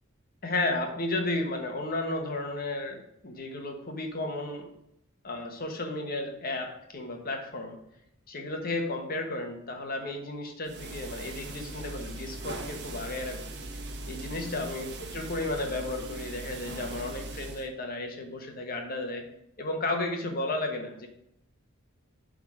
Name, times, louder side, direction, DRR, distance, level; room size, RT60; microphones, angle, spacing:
voice 1, 0.4-4.7 5.2-7.8 8.3-13.6 14.1-19.2 19.6-21.1, left 2 dB, 50° left, 3 dB, 1.5 m, -33 dB
sound 1, 10.6-17.7, right 2 dB, 60° right, 1.1 m, -40 dB
11.5 x 4.0 x 5.0 m, 0.77 s
head